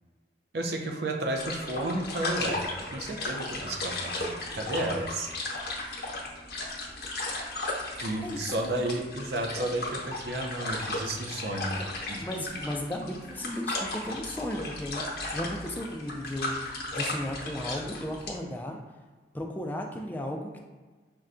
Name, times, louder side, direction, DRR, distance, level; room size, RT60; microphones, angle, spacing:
voice 1, 0.5-2.6 2.9-5.3 8.0-11.7 12.1-12.2, right 1 dB, 65° right, 2 dB, 0.5 m, -32 dB
sound 1, 1.3-18.4, left 2 dB, 65° left, 0.8 m, -35 dB
voice 2, 8.2-8.9 12.2-18.8 19.3-20.6, left 1 dB, 10° left, 1 dB, 0.3 m, -35 dB
5.3 x 2.2 x 2.4 m, 1.4 s
head